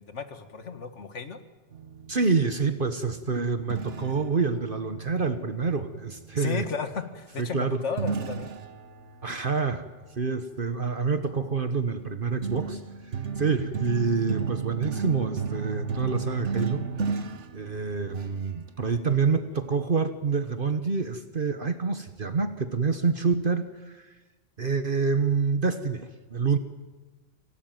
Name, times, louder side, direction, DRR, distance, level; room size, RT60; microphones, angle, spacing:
voice 1, 0.0-1.4 6.4-8.5, left 5 dB, 75° left, 9 dB, 2.1 m, -34 dB
sound 1, 1.7-6.5 8.0-10.1 11.2-11.5 12.0-18.4, right 5 dB, 75° right, 1.5 m, -34 dB
voice 2, 2.1-6.7 7.4-7.8 9.2-9.8 10.2-12.8 13.4-16.8 17.5-24.0 24.6-26.6, right 4 dB, 50° right, 9 dB, 1.3 m, -27 dB
26.0 x 18.0 x 9.2 m, 1.2 s
omnidirectional pair, 1.2 m